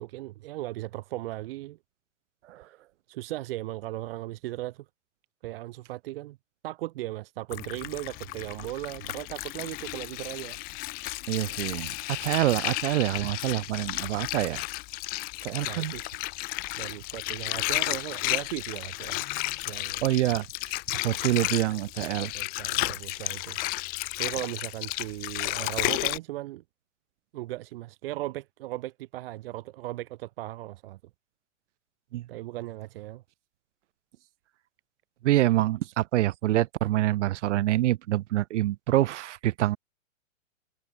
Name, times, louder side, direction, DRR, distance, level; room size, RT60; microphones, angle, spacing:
voice 1, 0.0-1.8 3.1-4.8 5.4-6.4 6.6-10.6 15.7-16.1 16.7-19.2 19.7-20.0 21.4-21.6 22.3-23.6 24.2-26.6 27.3-31.0 32.3-33.2, right 17 dB, 45° right, 0.9 m, -37 dB
Water, 7.5-26.2, left 24 dB, 25° left, 0.7 m, -33 dB
voice 2, 11.3-14.6 15.4-15.9 20.0-22.3 22.7-22.9 32.1-32.3 35.2-39.8, right 15 dB, 60° right, 0.5 m, -26 dB
hypercardioid pair, 140°, 40 cm